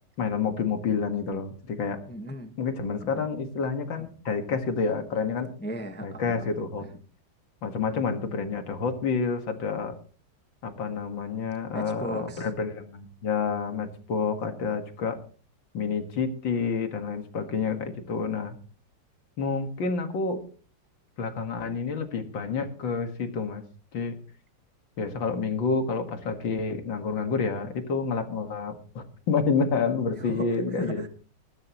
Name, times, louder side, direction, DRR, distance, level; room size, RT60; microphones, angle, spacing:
voice 1, 0.2-2.0 2.6-5.5 6.0-6.9 7.6-10.0 10.6-15.2 15.7-18.6 19.4-20.4 21.2-23.6 23.9-24.2 25.0-31.1, left 5 dB, 75° left, 7 dB, 2.5 m, -29 dB
voice 2, 2.1-2.6 3.0-3.3 5.6-6.5 6.8-6.9 11.7-12.5 30.2-31.1, right 1 dB, 5° left, 7 dB, 0.9 m, -37 dB
20.5 x 12.0 x 3.0 m, 0.39 s
omnidirectional pair, 2.1 m